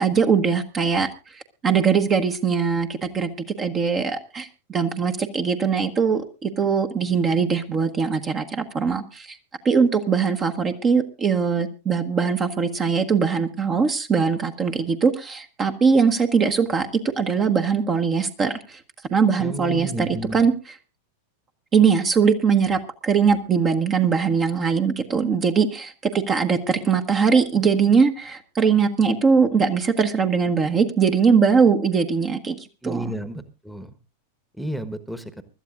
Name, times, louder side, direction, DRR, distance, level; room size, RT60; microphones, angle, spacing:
voice 1, 0.0-3.3 3.6-9.4 9.6-16.9 17.2-18.8 19.1-20.8 21.7-32.6 32.8-33.1, right 5 dB, 25° right, 7 dB, 1.1 m, -21 dB
voice 2, 19.4-20.4 32.8-33.9 34.6-35.4, right 1 dB, ahead, 11 dB, 1.2 m, -32 dB
24.5 x 12.5 x 2.5 m, 0.32 s
figure-of-eight pair, 90°, 0 cm